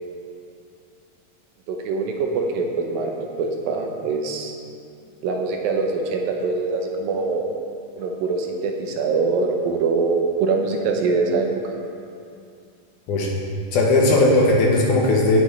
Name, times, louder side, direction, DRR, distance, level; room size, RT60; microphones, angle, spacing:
voice 1, 1.7-4.5 5.2-7.4 8.0-11.5 13.1-13.3, right 4 dB, 80° right, 2 dB, 2.6 m, -23 dB
voice 2, 13.7-15.4, left 2 dB, 70° left, -3 dB, 2.3 m, -17 dB
17.5 x 6.1 x 3.3 m, 2.4 s
omnidirectional pair, 4.2 m